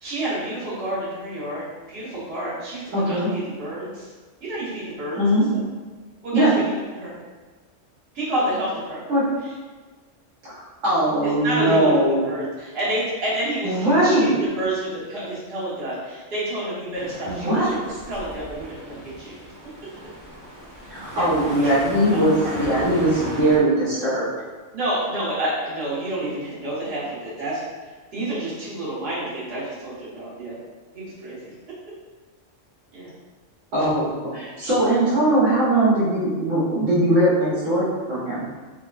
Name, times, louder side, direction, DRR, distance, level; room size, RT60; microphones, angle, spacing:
voice 1, 0.0-4.1 4.4-5.2 5.5-5.6 6.2-7.2 8.1-9.2 9.4-9.5 11.2-17.8 18.1-19.3 21.1-21.3 21.6-21.7 22.1-23.0 24.7-27.6 28.1-30.6 30.9-31.4 32.9-33.1, right 1 dB, 55° right, -9 dB, 1.2 m, -29 dB
voice 2, 2.9-3.3 5.2-5.4 6.3-6.5 9.1-9.2 10.5-12.3 13.6-14.3 17.2-17.7 20.9-24.3 33.7-38.4, right 1 dB, 75° right, -10 dB, 1.2 m, -20 dB
sound 1, 16.9-23.6, equal, 20° right, 0.5 m, -36 dB
3.5 x 2.3 x 2.2 m, 1.3 s
omnidirectional pair, 1.3 m